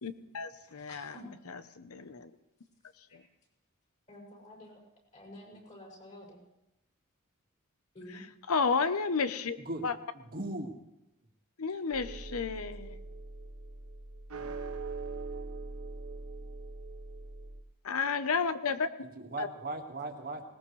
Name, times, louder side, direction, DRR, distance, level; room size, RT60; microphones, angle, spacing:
voice 1, 0.0-1.1 1.5-2.3 8.5-9.6 9.8-9.9 11.6-13.0 17.8-18.9 19.4-19.5, left 5 dB, 80° left, 12 dB, 0.8 m, -31 dB
voice 2, 0.6-1.3 3.1-3.2 4.1-4.8 5.1-6.4 7.9-8.2, left 1 dB, 35° left, 0 dB, 6.6 m, -50 dB
voice 3, 10.1-10.7 19.0-20.4, right 2 dB, 45° right, 3 dB, 1.8 m, -38 dB
sound 1, 11.9-17.6, right 3 dB, 85° right, 1.2 m, -42 dB
20.0 x 19.0 x 3.3 m, 0.91 s
head